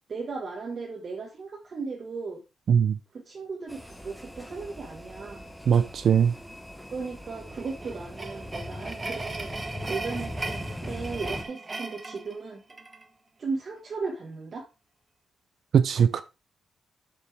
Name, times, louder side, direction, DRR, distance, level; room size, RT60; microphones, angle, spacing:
voice 1, 0.1-2.4 3.1-5.4 6.9-9.5 9.9-12.8 13.4-14.7, right 4 dB, 50° right, 1.7 m, -36 dB
sound 1, 3.7-11.4, left 1 dB, 5° left, 1.1 m, -40 dB
voice 2, 5.7-6.3 15.7-16.2, right 7 dB, 65° right, 0.6 m, -20 dB
sound 2, 7.5-13.0, right 3 dB, 25° right, 1.1 m, -38 dB
8.0 x 5.8 x 3.6 m
cardioid pair, 95°, 0 cm